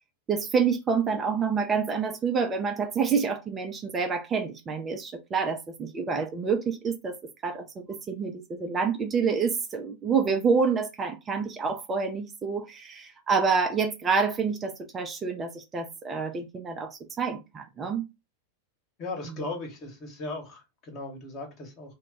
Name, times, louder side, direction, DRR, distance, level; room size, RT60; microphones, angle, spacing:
voice 1, 0.3-7.2 7.4-18.0, right 5 dB, 20° right, 0.5 m, -28 dB
voice 2, 19.0-21.9, left 2 dB, 35° left, 1.2 m, -37 dB
2.2 x 2.2 x 3.9 m
figure-of-eight pair, 90°, 0 cm